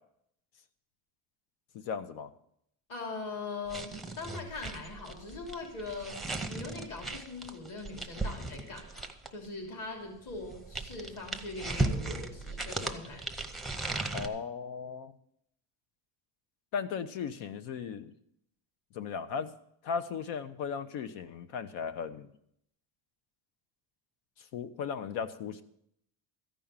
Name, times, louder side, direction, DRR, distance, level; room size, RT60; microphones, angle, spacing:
voice 1, 1.7-2.3 14.1-15.1 16.7-18.1 18.9-19.6 19.8-22.3 24.4-25.6, left 6 dB, 80° left, 12 dB, 1.2 m, -36 dB
voice 2, 2.9-6.2 6.5-13.5, left 3 dB, 45° left, 1 dB, 3.2 m, -41 dB
sound 1, 3.7-9.4 10.3-14.3, right 2 dB, ahead, 0.6 m, -36 dB
14.0 x 5.5 x 8.9 m, 0.72 s
cardioid pair, 155°, 45 cm